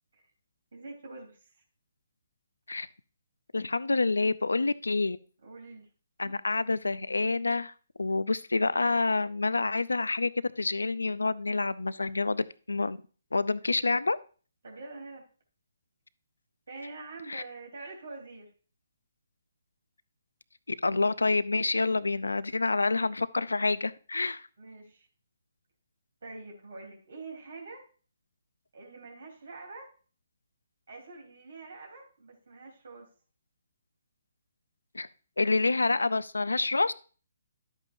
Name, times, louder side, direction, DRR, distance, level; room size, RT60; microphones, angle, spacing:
voice 1, 0.7-1.4 5.4-5.9 6.2-6.4 14.6-15.2 16.7-18.5 24.6-25.1 26.2-27.9 28.7-29.9 30.9-33.1, right 3 dB, 70° right, 0 dB, 3.6 m, -45 dB
voice 2, 3.5-5.2 6.2-7.7 8.0-10.3 10.6-13.0 13.3-14.2 17.3-17.4 20.7-24.5 34.9-35.1 35.4-36.9, left 3 dB, 90° left, 17 dB, 0.5 m, -27 dB
11.5 x 8.1 x 2.7 m, 0.38 s
hypercardioid pair, 145°, 0 cm